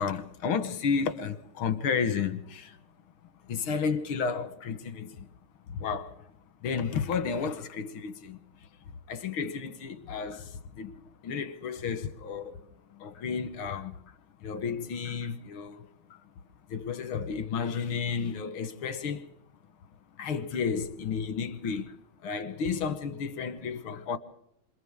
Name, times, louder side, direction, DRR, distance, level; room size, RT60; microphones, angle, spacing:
voice 1, 0.0-2.8 3.4-5.3 5.7-6.2 6.6-8.7 9.1-12.6 12.9-14.2 14.4-16.2 16.7-19.3 20.2-22.0 22.2-24.2, left 6 dB, 90° left, 2.0 m, -32 dB
28.5 x 26.0 x 3.6 m
omnidirectional pair, 2.2 m